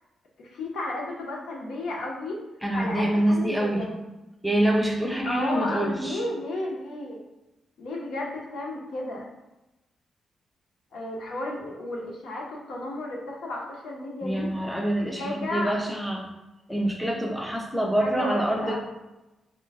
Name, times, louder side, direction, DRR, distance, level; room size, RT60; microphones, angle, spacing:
voice 1, 0.4-2.4 2.7-4.0 5.2-7.2 7.8-9.3 10.9-14.8 15.2-15.7 18.0-18.8, left 2 dB, 80° left, -1 dB, 0.8 m, -33 dB
voice 2, 2.6-3.9 4.4-6.2 14.2-16.3 16.7-18.8, right 1 dB, ahead, 0 dB, 0.5 m, -26 dB
3.7 x 2.2 x 3.5 m, 1.0 s
wide cardioid pair, 175°, 0 cm